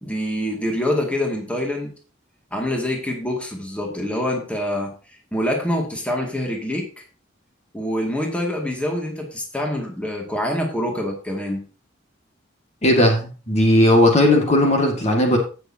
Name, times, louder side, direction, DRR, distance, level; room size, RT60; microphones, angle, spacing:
voice 1, 0.0-1.9 2.5-4.9 5.3-6.9 7.7-11.6, left 1 dB, 5° left, 2.2 m, -25 dB
voice 2, 12.8-15.4, left 1 dB, 35° left, 2.0 m, -16 dB
16.5 x 6.5 x 2.8 m
head